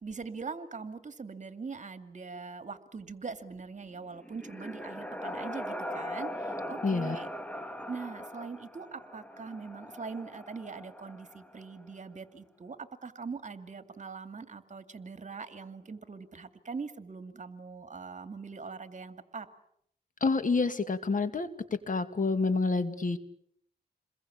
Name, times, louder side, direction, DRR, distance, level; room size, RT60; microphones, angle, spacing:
voice 1, 0.0-7.3 7.9-19.5, right 4 dB, 45° right, 10 dB, 2.4 m, -42 dB
sound 1, 3.9-11.8, equal, 10° left, 2.2 m, -40 dB
voice 2, 6.8-7.2 20.2-21.5 21.9-23.2, left 4 dB, 50° left, 10 dB, 2.6 m, -28 dB
28.5 x 21.5 x 8.6 m, 0.70 s
cardioid pair, 80°, 17 cm